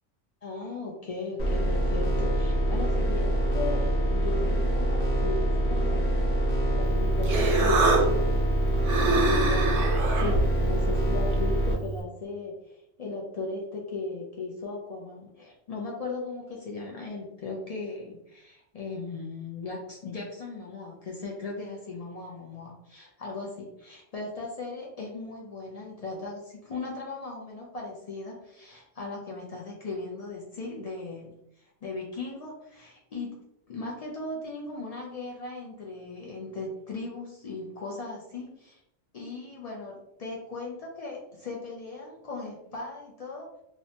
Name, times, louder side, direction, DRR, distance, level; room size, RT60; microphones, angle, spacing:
voice 1, 0.4-6.1 6.7-8.4 9.1-33.4 33.7-38.8 39.1-43.6, left 3 dB, 60° left, -2 dB, 0.4 m, -37 dB
sound 1, 1.4-11.7, right 1 dB, 40° left, 0.8 m, -25 dB
Human voice, 6.8-12.0, right 3 dB, 80° right, 0.9 m, -27 dB
2.8 x 2.1 x 2.7 m, 0.81 s
omnidirectional pair, 1.2 m